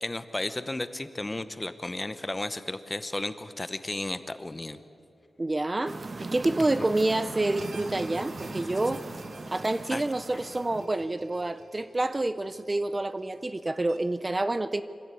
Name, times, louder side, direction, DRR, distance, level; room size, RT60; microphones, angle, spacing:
voice 1, 0.0-4.8 6.8-6.9 9.9-10.0, left 2 dB, 20° left, 12 dB, 0.9 m, -34 dB
voice 2, 5.4-9.0 9.5-14.8, right 2 dB, 25° right, 13 dB, 0.5 m, -28 dB
sound 1, 5.9-10.8, right 3 dB, 45° right, 1.3 m, -39 dB
sound 2, 7.6-14.0, right 3 dB, 85° right, 2.4 m, -51 dB
24.5 x 15.5 x 8.4 m, 2.7 s
wide cardioid pair, 110°, 0 cm